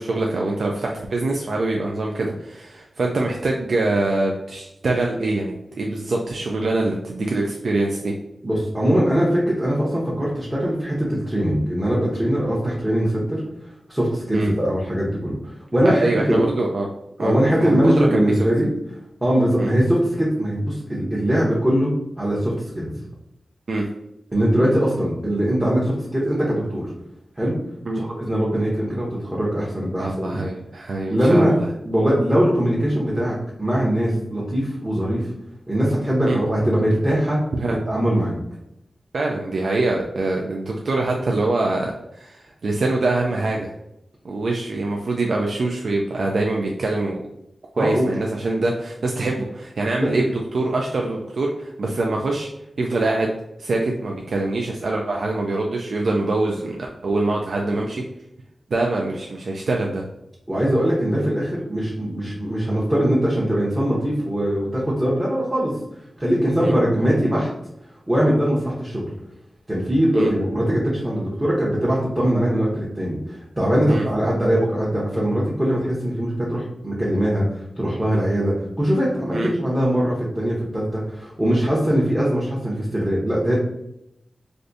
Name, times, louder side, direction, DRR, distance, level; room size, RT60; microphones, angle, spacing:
voice 1, 0.0-8.1 14.3-14.5 15.8-16.9 17.2-18.5 19.6-19.7 23.7-23.8 27.9-28.0 30.0-31.7 36.3-36.4 37.6-37.8 39.1-43.7 44.2-47.2 47.7-52.5 52.8-53.3 53.6-58.0 58.7-60.0 66.6-66.7 70.1-70.3 73.9-74.0 79.3-79.5, right 2 dB, 70° right, 0 dB, 0.4 m, -24 dB
voice 2, 8.4-13.4 13.9-15.4 15.7-16.4 17.2-18.7 19.2-21.9 22.2-22.9 24.3-26.8 27.4-27.5 27.9-30.4 30.9-31.6 31.8-35.3 35.7-37.4 37.9-38.3 47.8-48.1 50.0-50.1 60.5-65.7 66.2-67.5 68.1-69.0 69.7-83.5, equal, 15° right, -6 dB, 0.7 m, -21 dB
3.4 x 2.5 x 2.6 m, 0.82 s
wide cardioid pair, 100°, 0 cm